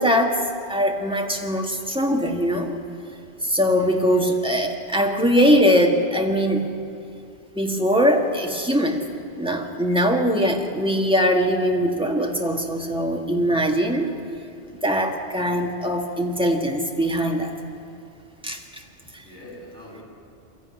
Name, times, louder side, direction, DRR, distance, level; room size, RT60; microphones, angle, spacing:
voice 1, 0.0-2.8 3.4-6.7 7.6-9.1 9.4-14.1 14.8-17.6 18.4-18.6 19.1-19.2, equal, 5° right, 1 dB, 1.8 m, -21 dB
voice 2, 3.8-4.2 19.2-20.0, equal, 45° right, -4 dB, 7.4 m, -43 dB
22.5 x 14.0 x 9.6 m, 2.7 s
omnidirectional pair, 1.2 m